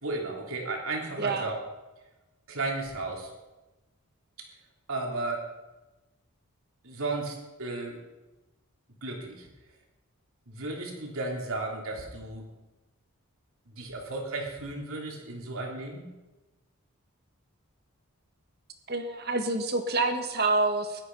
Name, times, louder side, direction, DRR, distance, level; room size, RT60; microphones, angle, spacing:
voice 1, 0.0-1.6 2.5-3.3 4.9-5.5 6.8-8.0 9.0-9.5 10.5-12.5 13.7-16.0, right 2 dB, 70° right, 1 dB, 3.4 m, -34 dB
voice 2, 18.9-21.0, right 3 dB, 45° right, 6 dB, 1.7 m, -27 dB
17.0 x 12.0 x 5.6 m, 1.1 s
head